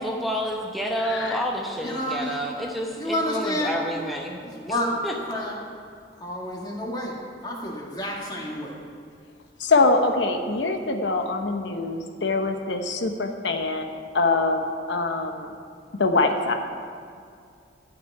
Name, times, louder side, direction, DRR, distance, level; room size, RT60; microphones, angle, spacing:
voice 1, 0.0-4.4 5.0-5.1, equal, ahead, -2 dB, 0.9 m, -29 dB
voice 2, 1.0-1.4 9.6-15.5 16.0-16.5, left 3 dB, 90° left, 5 dB, 1.0 m, -24 dB
voice 3, 1.7-2.5 3.0-3.8 4.4-5.6 6.2-7.2 7.4-8.8, left 1 dB, 25° left, -3 dB, 2.0 m, -30 dB
12.0 x 5.9 x 9.2 m, 2.3 s
head